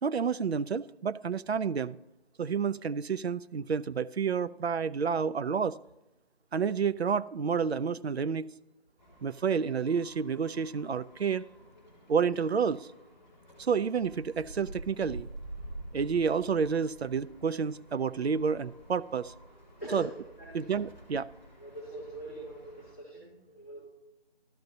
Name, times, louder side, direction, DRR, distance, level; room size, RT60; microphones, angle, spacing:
voice 1, 0.0-2.0 2.4-5.8 6.5-8.5 9.2-11.4 12.1-12.9 13.6-15.3 15.9-19.3 19.9-20.1 20.5-21.3, right 6 dB, 80° right, 0.5 m, -29 dB
sound 1, 9.0-22.9, right 2 dB, 5° left, 1.9 m, -49 dB
voice 2, 19.8-20.7 21.6-23.9, right 1 dB, 15° right, 2.1 m, -43 dB
13.5 x 5.2 x 2.7 m
figure-of-eight pair, 170°, 32 cm